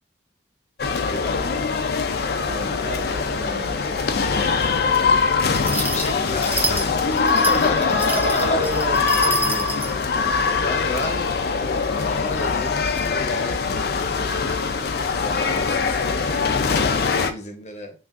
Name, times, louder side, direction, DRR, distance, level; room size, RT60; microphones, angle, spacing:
sound 1, 0.8-17.3, left 5 dB, 60° left, 0.4 m, -22 dB
voice 1, 1.0-1.7 5.7-8.6 10.0-10.3 10.6-14.2 15.1-17.9, left 2 dB, 40° left, 0.8 m, -32 dB
voice 2, 2.4-4.4 7.9-9.7 15.2-15.9, right 1 dB, 45° right, 2.0 m, -32 dB
sound 2, 5.5-9.9, right 2 dB, 10° right, 0.6 m, -28 dB
5.8 x 2.4 x 2.4 m
head